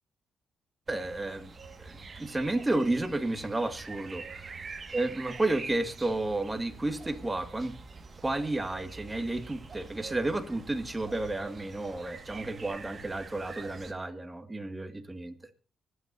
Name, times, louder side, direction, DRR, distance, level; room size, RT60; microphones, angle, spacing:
voice 1, 0.9-1.5 1.8-4.5 4.9-7.8 8.2-15.4, right 2 dB, 15° right, 8 dB, 1.9 m, -32 dB
sound 1, 0.9-13.9, right 4 dB, 35° right, 1.7 m, -46 dB
25.0 x 9.7 x 2.6 m, 0.35 s
cardioid pair, 90°, 0 cm